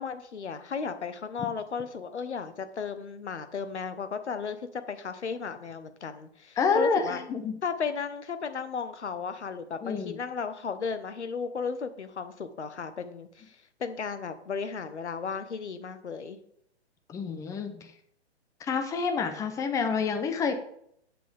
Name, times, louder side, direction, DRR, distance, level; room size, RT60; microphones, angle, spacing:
voice 1, 0.0-7.2 7.6-16.4, left 5 dB, 75° left, 10 dB, 1.2 m, -35 dB
voice 2, 6.6-7.5 9.8-10.2 17.1-17.9 18.6-20.5, left 5 dB, 10° left, 7 dB, 0.6 m, -28 dB
8.6 x 7.5 x 3.5 m, 0.70 s
figure-of-eight pair, 130°, 34 cm